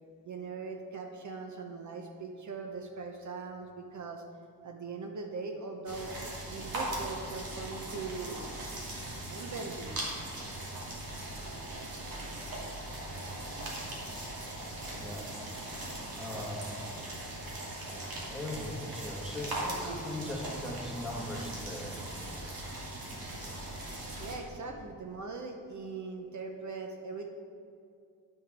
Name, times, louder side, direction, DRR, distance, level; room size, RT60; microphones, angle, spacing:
voice 1, 0.3-4.2 4.6-6.2 6.5-8.4 9.3-10.0 24.2-27.3, right 4 dB, 55° right, 3 dB, 0.8 m, -40 dB
sound 1, 5.9-24.4, right 1 dB, 75° right, 2.5 m, -39 dB
voice 2, 15.0-15.3 15.7-15.8 16.2-16.7 17.9-18.0 18.3-22.1, left 1 dB, ahead, -2 dB, 1.5 m, -39 dB
10.5 x 5.8 x 6.0 m, 2.4 s
wide cardioid pair, 165°, 35 cm